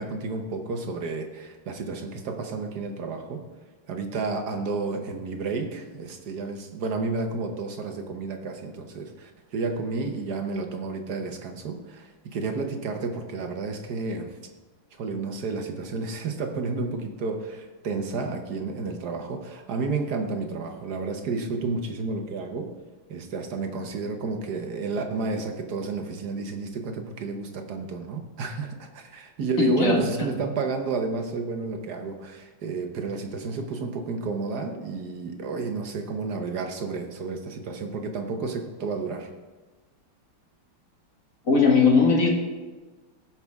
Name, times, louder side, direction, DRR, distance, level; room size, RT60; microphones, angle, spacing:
voice 1, 0.0-3.4 3.9-14.4 14.9-22.7 23.1-39.3, right 4 dB, 60° right, 5 dB, 1.3 m, -31 dB
voice 2, 29.6-30.3 41.5-42.3, left 4 dB, 45° left, 0 dB, 1.9 m, -19 dB
15.5 x 5.8 x 3.5 m, 1.3 s
omnidirectional pair, 2.2 m